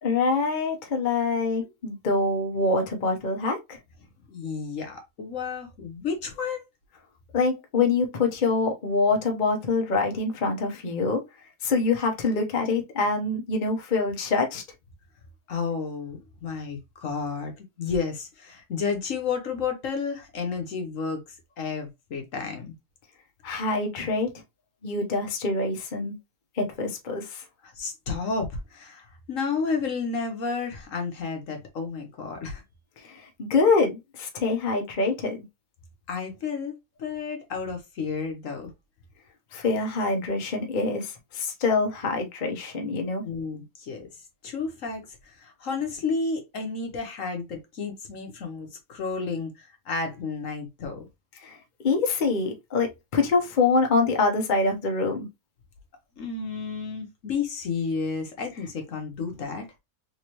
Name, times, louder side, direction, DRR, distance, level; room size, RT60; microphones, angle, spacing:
voice 1, 0.0-3.8 7.3-11.2 11.6-14.6 23.4-24.3 24.8-26.2 26.6-27.4 33.0-35.4 39.5-43.2 51.4-51.6 51.8-55.3, left 3 dB, 40° left, 0.8 m, -25 dB
voice 2, 4.3-6.6 15.5-22.7 27.6-32.6 36.1-36.7 37.0-38.7 43.2-44.1 44.4-51.1 56.2-59.7, left 5 dB, 60° left, 1.2 m, -31 dB
3.5 x 3.2 x 2.9 m
omnidirectional pair, 1.6 m